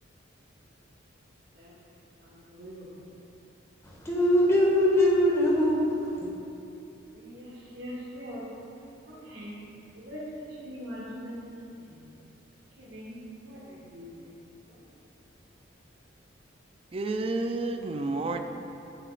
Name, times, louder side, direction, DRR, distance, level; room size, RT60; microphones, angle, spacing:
voice 1, 2.2-3.0 5.2-5.3 7.1-8.4 9.0-9.6 9.9-11.4 11.6-12.0 12.8-14.3 14.7-14.8, equal, 80° right, -11 dB, 1.8 m, -42 dB
voice 2, 3.8-5.8 6.2-6.3, equal, 15° left, -5 dB, 1.4 m, -22 dB
voice 3, 16.9-18.4, right 2 dB, 30° right, 6 dB, 0.4 m, -30 dB
9.7 x 7.8 x 2.5 m, 2.8 s
head